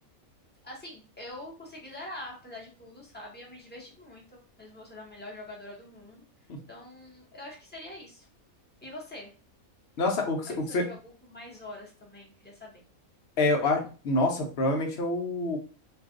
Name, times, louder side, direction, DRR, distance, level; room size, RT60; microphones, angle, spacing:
voice 1, 0.6-8.3 8.8-9.3 10.4-12.8, left 1 dB, 10° left, -3 dB, 0.7 m, -45 dB
voice 2, 10.0-10.9 13.4-15.6, left 2 dB, 60° left, 3 dB, 0.8 m, -27 dB
2.5 x 2.3 x 3.6 m, 0.36 s
omnidirectional pair, 1.5 m